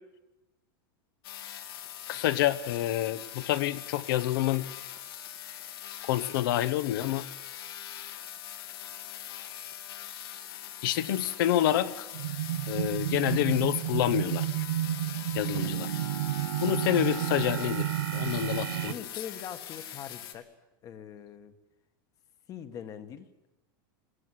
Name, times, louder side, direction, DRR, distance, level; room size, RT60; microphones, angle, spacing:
sound 1, 1.2-20.3, left 11 dB, 80° left, 2.8 m, -42 dB
voice 1, 2.1-4.7 6.0-7.2 10.8-12.1 12.7-14.6 15.3-15.9 16.6-18.9, left 13 dB, 65° left, 13 dB, 1.2 m, -28 dB
sound 2, 12.1-18.9, right 14 dB, 75° right, 0.7 m, -31 dB
voice 2, 18.9-20.5 20.8-21.5 22.5-23.3, left 9 dB, 30° left, 9 dB, 1.5 m, -42 dB
22.5 x 15.5 x 9.8 m, 1.0 s
supercardioid pair, 155°, 12 cm